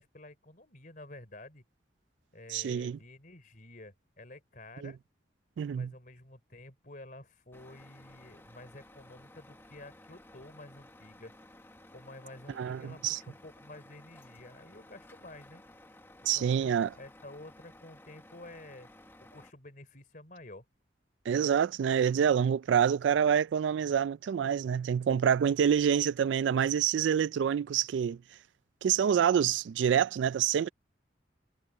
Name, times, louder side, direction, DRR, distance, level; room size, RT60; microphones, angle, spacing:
voice 1, 0.0-1.6 2.3-5.0 5.7-11.3 11.9-15.6 16.3-18.9 19.3-20.6, left 2 dB, 45° left, 3.3 m, -50 dB
voice 2, 2.5-3.0 4.8-4.9 5.6-5.9 12.6-13.2 16.2-16.9 21.3-28.2 28.8-30.7, right 8 dB, 85° right, 0.3 m, -27 dB
Truck, 7.5-19.5, left 1 dB, 10° left, 0.9 m, -55 dB
head